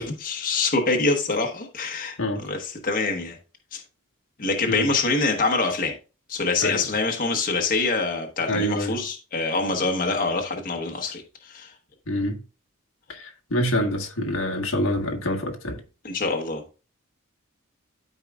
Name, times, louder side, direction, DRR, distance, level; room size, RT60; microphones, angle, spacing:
voice 1, 0.0-3.4 3.7-3.8 4.4-5.9 6.3-11.7 16.0-16.6, left 3 dB, 45° left, 1.1 m, -25 dB
voice 2, 8.5-9.0 12.1-12.4 13.1-15.8, left 1 dB, 80° left, 1.5 m, -26 dB
12.5 x 4.7 x 2.4 m
head